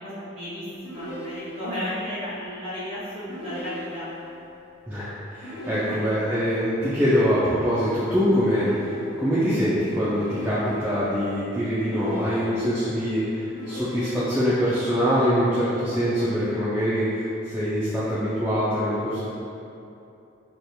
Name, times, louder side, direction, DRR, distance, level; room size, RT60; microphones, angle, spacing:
voice 1, 0.0-4.1 5.7-6.1, equal, 30° right, -11 dB, 0.9 m, -34 dB
sound 1, 0.8-1.9 3.3-4.3 5.4-6.5 8.5-9.5 10.1-11.0 11.9-12.9 13.5-14.6, equal, 50° left, 1.0 m, -37 dB
voice 2, 4.9-19.2, equal, 10° right, -13 dB, 0.3 m, -24 dB
2.9 x 2.8 x 2.2 m, 2.8 s
head